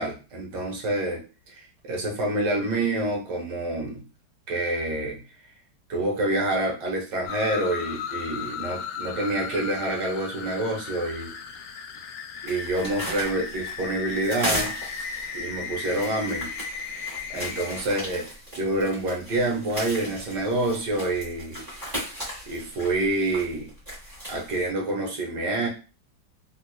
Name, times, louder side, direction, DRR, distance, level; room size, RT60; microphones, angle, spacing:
voice 1, 0.0-4.0 4.5-5.2 5.9-11.3 12.4-14.7 15.3-16.5 17.3-21.6 22.5-23.7 24.3-25.7, right 1 dB, 70° right, -1 dB, 1.6 m, -27 dB
sound 1, 7.3-17.8, left 6 dB, 70° left, 0.9 m, -36 dB
sound 2, 12.5-24.7, equal, 15° right, 1.9 m, -37 dB
3.8 x 2.8 x 2.2 m, 0.33 s
omnidirectional pair, 2.0 m